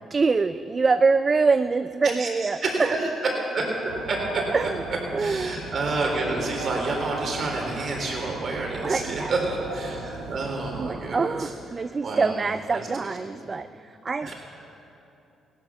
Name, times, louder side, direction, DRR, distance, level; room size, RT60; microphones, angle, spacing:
voice 1, 0.1-3.0 4.5-4.8 5.1-5.6 8.8-9.4 10.8-14.3, right 4 dB, 40° right, 12 dB, 0.4 m, -24 dB
voice 2, 2.6-3.1 3.5-4.5 5.2-11.4 12.0-12.4 12.7-12.8 14.2-14.3, right 2 dB, 55° right, 0 dB, 3.7 m, -29 dB
sound 1, 3.9-10.9, right 3 dB, 90° right, 1.7 m, -37 dB
17.0 x 11.5 x 5.9 m, 2.8 s
hypercardioid pair, 50°, 0 cm